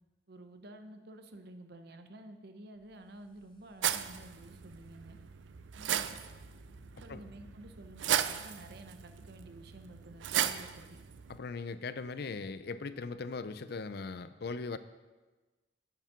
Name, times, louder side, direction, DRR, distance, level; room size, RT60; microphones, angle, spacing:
voice 1, 0.3-5.2 5.7-6.2 7.0-10.8, right 1 dB, 60° right, 8 dB, 0.8 m, -51 dB
sound 1, 2.7-13.4, left 1 dB, 25° left, 1.6 m, -64 dB
sound 2, 3.8-11.4, right 10 dB, 80° right, 0.4 m, -36 dB
voice 2, 11.4-14.8, left 4 dB, 60° left, 13 dB, 0.5 m, -39 dB
8.1 x 7.2 x 5.9 m, 1.2 s
head